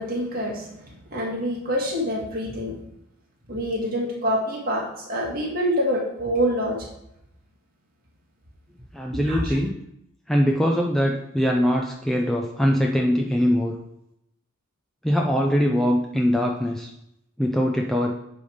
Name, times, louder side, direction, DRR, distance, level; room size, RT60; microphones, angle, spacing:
voice 1, 0.0-2.8 3.5-6.8 9.3-9.6, equal, 40° right, -3 dB, 1.9 m, -26 dB
voice 2, 8.9-9.7 10.3-13.8 15.0-16.9 17.4-18.1, equal, ahead, 0 dB, 0.5 m, -22 dB
9.4 x 3.4 x 5.0 m, 0.80 s
head